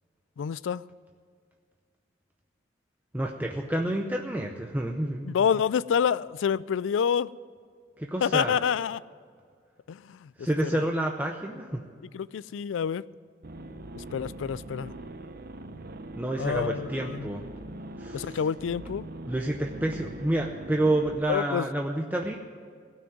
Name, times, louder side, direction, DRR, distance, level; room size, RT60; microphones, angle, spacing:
voice 1, 0.4-0.8 5.2-7.3 8.2-9.0 9.9-10.8 12.1-13.0 13.9-14.9 16.4-17.3 18.1-19.1 21.3-21.7, left 7 dB, 70° left, 20 dB, 0.3 m, -28 dB
voice 2, 3.1-5.4 8.0-8.6 10.4-11.8 16.2-17.4 18.0-18.4 19.3-22.4, right 1 dB, 10° right, 2 dB, 0.6 m, -29 dB
sound 1, 13.4-21.2, right 1 dB, 50° right, 0.8 m, -42 dB
17.0 x 6.1 x 9.4 m, 2.1 s
head